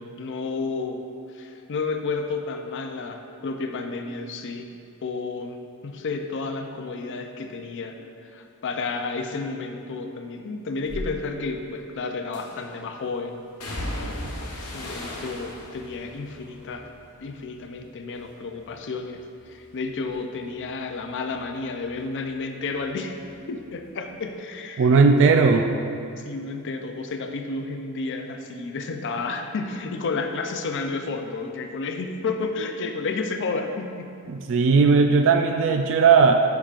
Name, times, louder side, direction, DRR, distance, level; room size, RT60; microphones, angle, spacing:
voice 1, 0.0-4.7 5.0-13.4 14.0-16.9 17.2-23.2 23.5-25.0 26.2-34.2, left 3 dB, 55° left, 5 dB, 0.5 m, -31 dB
sound 1, 10.9-11.1 12.3-12.8 13.6-17.8 18.2-18.8 19.2-22.4 22.7-23.8 24.1-24.3, left 1 dB, 90° left, 1.1 m, -38 dB
voice 2, 24.8-25.7 34.3-36.4, right 4 dB, 60° right, 5 dB, 0.3 m, -17 dB
9.9 x 5.9 x 2.5 m, 2.5 s
head